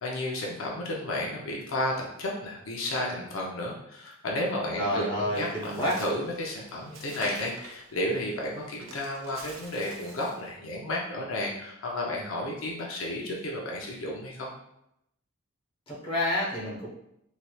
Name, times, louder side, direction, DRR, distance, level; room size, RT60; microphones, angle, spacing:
voice 1, 0.0-14.5, left 1 dB, 85° left, -2 dB, 0.6 m, -32 dB
voice 2, 4.7-6.0 15.9-16.9, left 1 dB, 25° left, -6 dB, 0.9 m, -29 dB
Bird, 5.3-10.5, right 2 dB, 80° right, 0.5 m, -47 dB
3.1 x 2.8 x 2.3 m, 0.79 s
head